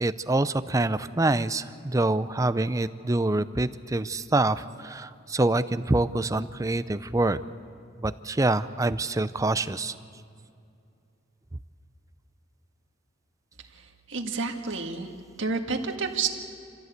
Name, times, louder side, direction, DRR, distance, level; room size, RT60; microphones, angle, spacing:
voice 1, 0.0-7.4 8.0-10.0, right 2 dB, 15° right, 13 dB, 0.5 m, -26 dB
voice 2, 13.7-15.1 15.4-16.3, right 4 dB, 65° right, 3 dB, 1.8 m, -30 dB
27.0 x 15.5 x 8.2 m, 2.5 s
head